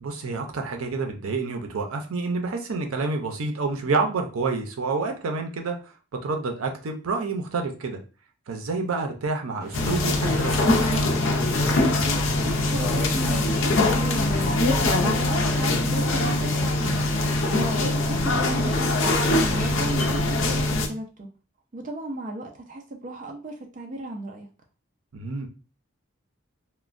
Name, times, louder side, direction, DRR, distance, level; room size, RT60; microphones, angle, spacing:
voice 1, 0.0-5.8 6.2-8.0 8.5-11.0 17.5-17.7 25.1-25.5, right 3 dB, 85° right, 4 dB, 0.6 m, -28 dB
sound 1, 9.6-20.1, equal, 15° left, 1.1 m, -39 dB
sound 2, 9.7-20.9, left 2 dB, 65° left, 0.5 m, -23 dB
voice 2, 12.4-14.6 15.0-17.0 17.5-21.3 21.7-24.5, right 1 dB, 40° right, 1 dB, 0.4 m, -34 dB
3.0 x 2.1 x 2.5 m, 0.34 s
head